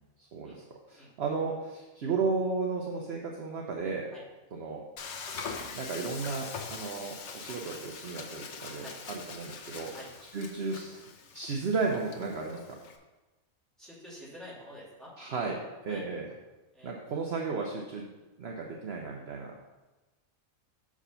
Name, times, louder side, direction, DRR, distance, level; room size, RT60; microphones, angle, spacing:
voice 1, 0.2-4.1 4.5-4.8 5.7-9.9 10.3-11.0 11.3-12.8 15.2-16.3 16.8-18.1 18.4-19.6, right 4 dB, 55° right, 0 dB, 0.9 m, -34 dB
Frying (food), 5.0-13.0, left 5 dB, 60° left, 1.0 m, -43 dB
voice 2, 13.8-15.1 15.9-16.0 16.7-16.9, equal, ahead, -8 dB, 2.5 m, -47 dB
6.7 x 5.0 x 5.6 m, 1.1 s
omnidirectional pair, 1.5 m